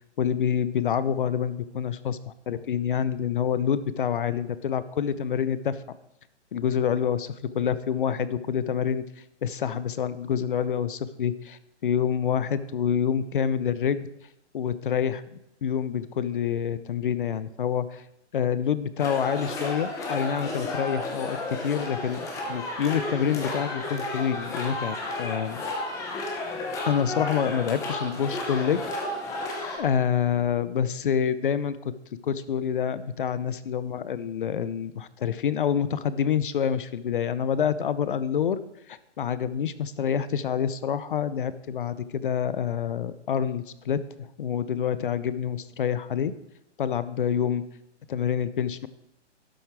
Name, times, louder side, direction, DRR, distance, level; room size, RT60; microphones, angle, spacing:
voice 1, 0.2-5.8 6.5-9.0 9.4-14.1 14.5-15.2 15.6-18.0 18.3-22.2 22.5-25.6 26.8-28.8 29.8-31.8 32.2-38.6 38.9-46.3 46.8-47.6 48.1-48.9, left 8 dB, 45° left, 15 dB, 0.7 m, -27 dB
sound 1, 19.0-29.8, left 2 dB, 10° left, 0.9 m, -32 dB
12.5 x 7.2 x 4.7 m, 0.86 s
hypercardioid pair, 160°, 35 cm